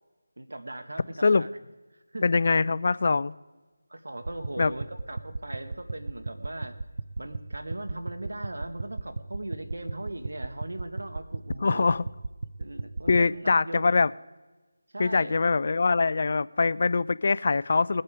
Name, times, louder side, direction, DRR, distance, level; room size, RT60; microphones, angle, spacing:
voice 1, 0.4-1.5 2.1-2.3 3.9-6.8 7.2-11.9 12.6-13.9 14.9-15.3, right 1 dB, 75° right, 9 dB, 1.4 m, -39 dB
voice 2, 2.2-3.4 4.6-4.7 11.6-12.0 13.1-14.1 15.0-18.0, left 4 dB, 45° left, 18 dB, 0.3 m, -23 dB
sound 1, 4.2-13.2, right 3 dB, 55° right, 0.5 m, -37 dB
20.0 x 8.5 x 4.8 m, 1.2 s
figure-of-eight pair, 165°, 0 cm